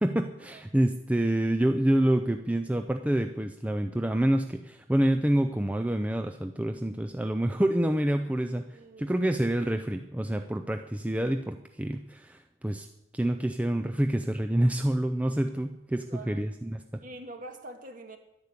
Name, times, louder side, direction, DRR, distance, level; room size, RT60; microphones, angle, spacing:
voice 1, 0.0-12.9 13.1-16.8, right 1 dB, 5° right, 6 dB, 0.4 m, -27 dB
voice 2, 8.7-9.2 16.1-16.5 17.0-18.2, right 2 dB, 45° right, 6 dB, 1.8 m, -45 dB
11.5 x 10.5 x 8.4 m, 0.90 s
head